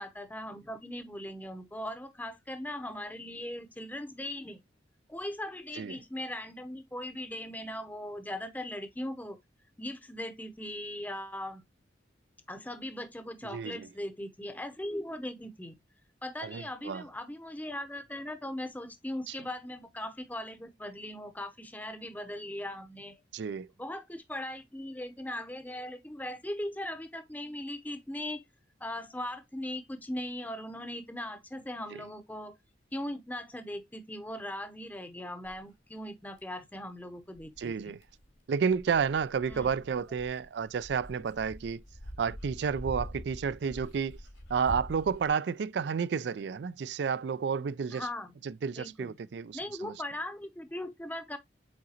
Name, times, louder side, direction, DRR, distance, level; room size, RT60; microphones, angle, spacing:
voice 1, 0.0-4.6 5.1-9.4 9.8-11.6 12.5-15.8 16.2-23.2 23.8-28.4 28.8-32.6 32.9-38.0 39.5-39.7 47.9-48.3 48.7-49.1 49.5-51.4, left 1 dB, 10° left, 0.7 m, -39 dB
voice 2, 13.5-13.8 16.4-17.0 23.3-23.7 37.6-38.0 38.5-41.8 42.2-44.2 44.5-48.1 48.4-49.9, right 6 dB, 65° right, 0.4 m, -31 dB
Dog, 35.4-35.6 36.4-36.5 37.4-45.3, equal, 85° left, 2.4 m, -45 dB
8.6 x 3.8 x 2.8 m
head